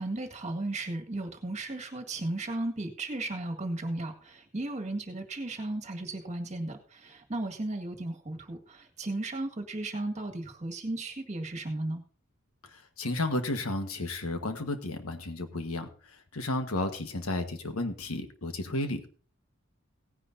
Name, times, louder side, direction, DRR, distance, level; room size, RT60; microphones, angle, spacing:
voice 1, 0.0-12.0, right 2 dB, 30° right, 5 dB, 1.9 m, -35 dB
voice 2, 12.6-19.1, left 2 dB, 70° left, 7 dB, 1.5 m, -33 dB
17.5 x 9.9 x 2.7 m, 0.40 s
head